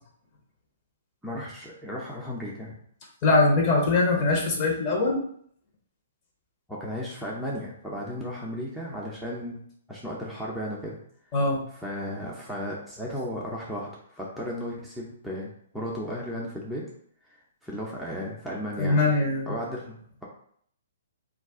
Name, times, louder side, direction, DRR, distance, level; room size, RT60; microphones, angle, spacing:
voice 1, 1.2-2.7 6.7-9.6 9.9-11.0 11.8-16.8 17.3-19.0 19.5-20.2, equal, ahead, -6 dB, 0.5 m, -35 dB
voice 2, 3.2-5.2 11.3-11.6 18.8-19.5, left 3 dB, 35° left, -1 dB, 0.9 m, -22 dB
2.4 x 2.3 x 3.5 m, 0.63 s
hypercardioid pair, 130°, 0 cm